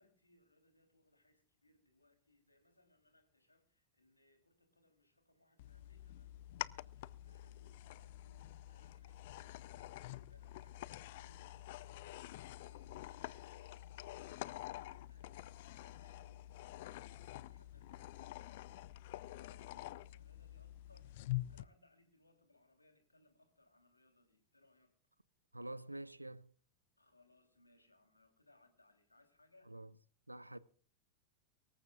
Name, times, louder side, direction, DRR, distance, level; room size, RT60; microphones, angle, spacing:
voice 1, 0.0-24.9 27.0-29.7, left 2 dB, 85° left, 3.4 m, -71 dB
sound 1, 5.6-21.6, left 16 dB, 50° left, 0.5 m, -47 dB
voice 2, 25.5-26.5 29.7-29.9 30.3-30.6, right 1 dB, 85° right, 0.7 m, -47 dB
24.0 x 14.5 x 2.5 m
figure-of-eight pair, 90°, 0 cm